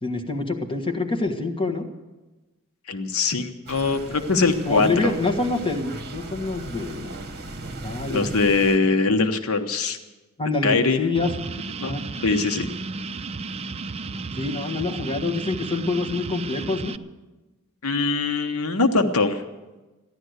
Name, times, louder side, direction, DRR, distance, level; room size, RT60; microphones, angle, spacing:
voice 1, 0.0-1.9 4.6-7.1 7.8-8.3 10.4-11.3 11.8-12.0 14.4-16.9, left 3 dB, 25° left, 2 dB, 1.6 m, -26 dB
voice 2, 2.9-5.1 8.1-10.0 10.6-11.1 11.8-12.7 17.8-19.4, left 3 dB, 80° left, 7 dB, 1.0 m, -22 dB
sound 1, 3.7-8.8, right 2 dB, 45° right, 1.2 m, -37 dB
sound 2, 11.1-17.0, right 4 dB, 30° right, 0.4 m, -33 dB
15.0 x 11.0 x 8.0 m, 1.1 s
head